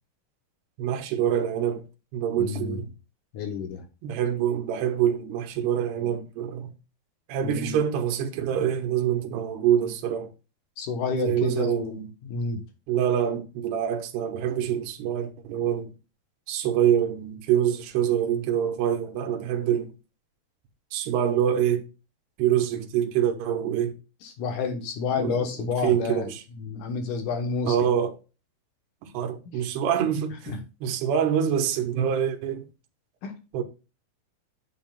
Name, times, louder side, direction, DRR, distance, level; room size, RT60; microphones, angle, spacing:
voice 1, 0.8-1.8 2.1-2.9 4.0-6.7 7.3-10.3 11.1-12.1 12.9-15.9 16.5-19.9 20.9-21.8 22.4-23.9 25.2-26.4 27.7-28.1 29.1-32.7 33.5-33.6, right 9 dB, 80° right, 3.0 m, -25 dB
voice 2, 2.4-2.8 3.3-3.9 5.6-6.2 7.4-7.8 10.8-11.9 12.2-12.6 24.2-27.9 30.5-30.6 33.2-33.3, left 5 dB, 70° left, 2.1 m, -30 dB
8.9 x 7.4 x 2.3 m
omnidirectional pair, 4.9 m